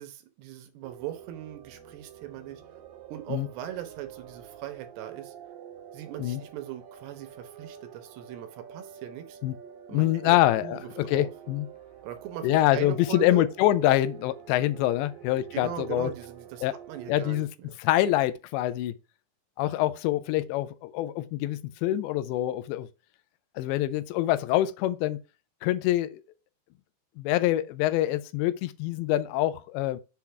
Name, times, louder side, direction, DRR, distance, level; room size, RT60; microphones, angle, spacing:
voice 1, 0.0-2.6 3.1-5.3 5.9-9.4 9.9-10.8 11.1-11.3 12.0-13.5 15.5-17.8, right 12 dB, 75° right, 3.1 m, -39 dB
sound 1, 0.8-17.4, right 9 dB, 60° right, 3.1 m, -47 dB
voice 2, 9.9-11.7 12.4-16.1 16.6-16.8 17.1-17.5 17.8-18.9 19.6-22.9 23.6-25.2 25.6-26.2 27.2-30.0, left 14 dB, 85° left, 2.9 m, -25 dB
7.4 x 3.9 x 5.7 m
omnidirectional pair, 5.0 m